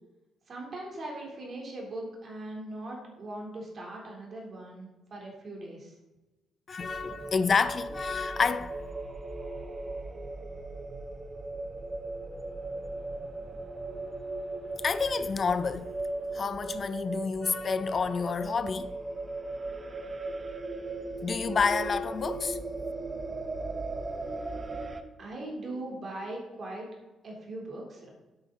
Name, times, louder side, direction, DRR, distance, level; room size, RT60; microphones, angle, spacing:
voice 1, 0.5-5.9 25.2-26.9 27.2-28.1, right 1 dB, 45° right, 3.6 m, -40 dB
voice 2, 6.7-8.8 14.8-15.9 16.3-18.9 21.2-22.6, left 5 dB, 40° left, 0.5 m, -29 dB
sound 1, 6.8-25.0, right 2 dB, 30° right, 0.9 m, -37 dB
9.7 x 8.8 x 4.1 m
cardioid pair, 90°, 0 cm